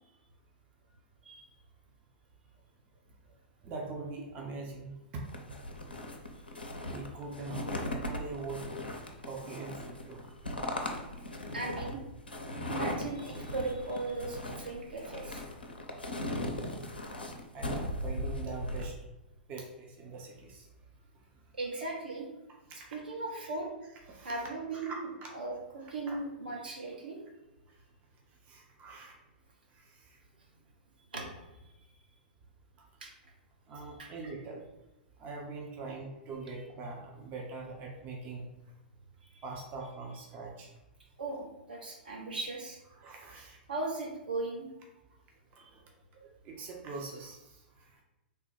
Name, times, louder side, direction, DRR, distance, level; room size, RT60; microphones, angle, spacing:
voice 1, 3.6-5.2 6.9-7.7 8.0-8.6 9.2-9.8 10.1-10.2 17.5-18.9 19.5-20.7 22.8-23.0 23.4-23.5 24.1-25.0 26.1-26.2 28.5-29.1 29.7-30.2 32.8-32.9 33.7-34.6 35.2-38.5 39.4-40.7 42.9-43.6 45.6-45.8 46.1-48.0, right 3 dB, 30° right, 0 dB, 0.6 m, -43 dB
sound 1, 5.3-18.9, left 1 dB, 85° left, 0.5 m, -38 dB
voice 2, 11.5-12.0 12.7-15.4 21.5-22.2 22.9-23.7 24.2-25.1 25.3-25.5 25.9-27.2 31.1-31.3 33.0-33.1 34.0-34.1 39.2-39.4 41.2-42.8 43.7-44.7, right 2 dB, 75° right, -2 dB, 1.0 m, -37 dB
3.4 x 2.1 x 4.3 m, 1.0 s
figure-of-eight pair, 105°, 5 cm